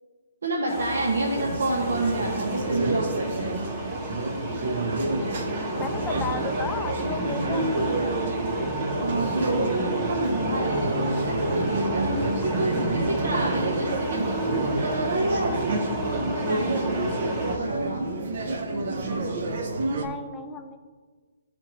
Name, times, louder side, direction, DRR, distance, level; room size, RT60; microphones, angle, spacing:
voice 1, 0.4-3.5 9.0-18.1, right 2 dB, 80° right, -3 dB, 1.1 m, -29 dB
sound 1, 0.7-17.6, right 1 dB, 25° right, 1.1 m, -31 dB
sound 2, 1.4-20.1, right 2 dB, 55° right, 0.8 m, -29 dB
voice 2, 5.8-7.8 19.9-20.8, left 5 dB, 15° left, 6 dB, 0.4 m, -34 dB
11.5 x 4.4 x 3.0 m, 1.5 s
hypercardioid pair, 145°, 0 cm